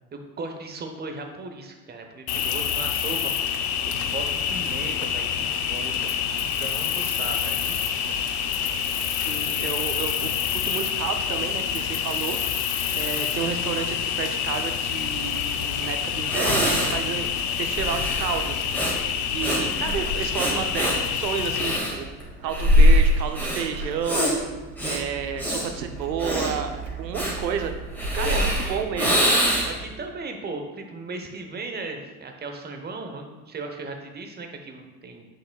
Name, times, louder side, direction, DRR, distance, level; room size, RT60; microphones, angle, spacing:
voice 1, 0.1-8.3 19.5-20.0 28.2-28.9 29.7-35.3, right 3 dB, 20° right, 4 dB, 0.9 m, -37 dB
Cricket, 2.3-21.8, left 8 dB, 65° left, 0.7 m, -27 dB
voice 2, 8.9-12.4 12.9-18.6 19.3-22.1 22.4-24.3 24.8-27.7 28.1-29.3, right 7 dB, 85° right, 7 dB, 0.8 m, -31 dB
Breathing, 15.8-15.9 16.2-29.9, equal, 5° left, 1.8 m, -23 dB
7.8 x 6.1 x 2.3 m, 1.2 s
hypercardioid pair, 85°, 49 cm